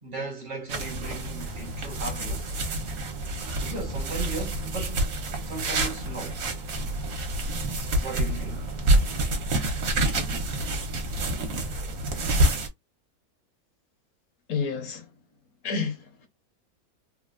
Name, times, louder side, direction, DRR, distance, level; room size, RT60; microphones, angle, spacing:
voice 1, 0.0-2.6 3.6-5.1 5.4-6.4 8.0-8.7, right 2 dB, 40° right, 0.9 m, -36 dB
sound 1, 0.7-12.7, right 1 dB, 65° right, 1.2 m, -28 dB
voice 2, 14.5-15.1 15.6-16.3, left 5 dB, 70° left, 1.4 m, -30 dB
3.4 x 2.4 x 2.4 m
omnidirectional pair, 1.6 m